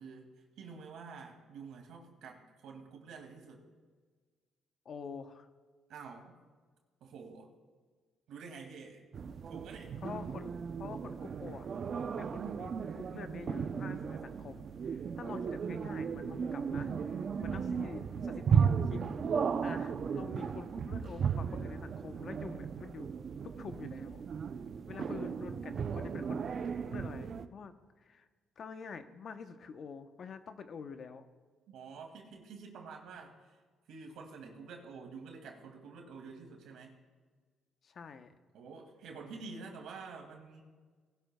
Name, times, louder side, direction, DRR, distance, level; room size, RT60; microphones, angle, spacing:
voice 1, 0.0-3.6 5.9-6.4 7.0-7.5 8.3-9.1 9.5-10.0 31.7-33.6 33.9-37.0 38.5-40.6, right 4 dB, 85° right, 2 dB, 2.3 m, -48 dB
voice 2, 4.8-5.5 10.0-10.5 10.8-11.7 12.2-19.0 19.6-23.1 23.4-24.2 24.9-26.4 26.9-28.3 28.6-31.3 37.8-38.4, left 5 dB, 55° left, 9 dB, 0.9 m, -47 dB
sound 1, 9.1-27.5, right 6 dB, 55° right, 0.6 m, -35 dB
19.5 x 11.5 x 2.3 m, 1.4 s
cardioid pair, 90°, 0 cm